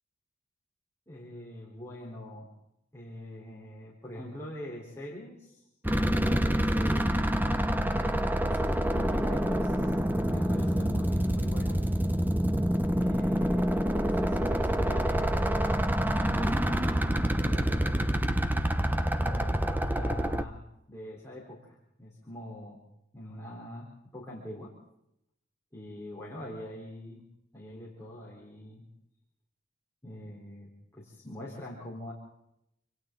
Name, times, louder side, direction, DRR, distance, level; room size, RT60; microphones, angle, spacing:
voice 1, 1.1-2.5 2.9-7.1 7.6-8.6 8.9-11.8 12.9-15.6 16.2-18.0 19.2-22.8 23.1-24.8 25.7-27.2 27.5-28.9 30.0-32.1, left 1 dB, 15° left, -5 dB, 4.1 m, -43 dB
sound 1, 5.8-20.4, equal, 10° right, 0.8 m, -27 dB
27.5 x 26.0 x 3.9 m, 0.80 s
head